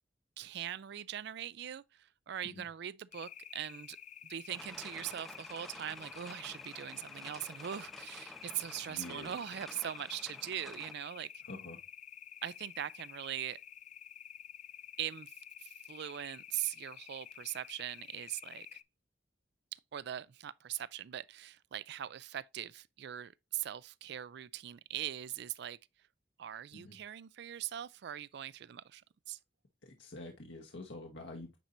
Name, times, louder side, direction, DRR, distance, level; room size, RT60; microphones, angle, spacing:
voice 1, 0.4-4.0 4.2-11.3 12.4-13.6 15.0-15.3 15.6-18.8 19.7-25.8 26.4-29.0 29.3-29.4, right 11 dB, 65° right, 0.4 m, -41 dB
sound 1, 3.1-18.8, left 10 dB, 40° left, 0.3 m, -50 dB
sound 2, 4.5-10.9, equal, ahead, 0.9 m, -52 dB
voice 2, 8.9-9.3 11.5-11.8 26.7-27.0 29.8-31.6, left 2 dB, 80° left, 1.2 m, -47 dB
9.0 x 4.3 x 2.6 m
head